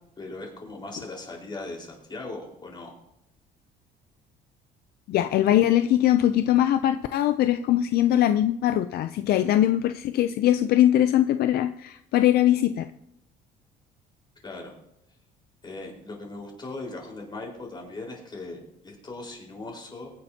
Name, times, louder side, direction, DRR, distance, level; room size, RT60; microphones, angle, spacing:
voice 1, 0.2-2.9 14.4-14.7 15.6-20.1, left 2 dB, 25° left, -1 dB, 4.5 m, -39 dB
voice 2, 5.1-12.9, left 12 dB, 65° left, 10 dB, 0.5 m, -21 dB
22.5 x 9.7 x 2.8 m, 0.83 s
cardioid pair, 110°, 17 cm